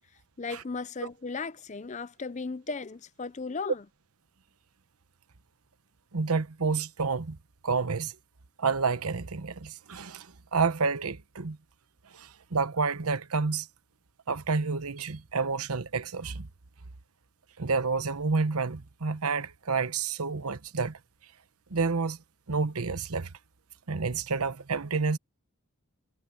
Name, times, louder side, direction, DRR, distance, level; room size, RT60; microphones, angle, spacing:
voice 1, 0.4-3.8, left 4 dB, 30° left, 0.5 m, -36 dB
voice 2, 6.1-7.4 7.6-8.1 8.6-11.6 12.1-13.7 14.3-16.5 17.6-21.0 21.7-22.2 22.5-23.3 23.9-25.2, right 4 dB, 85° right, 1.0 m, -29 dB
head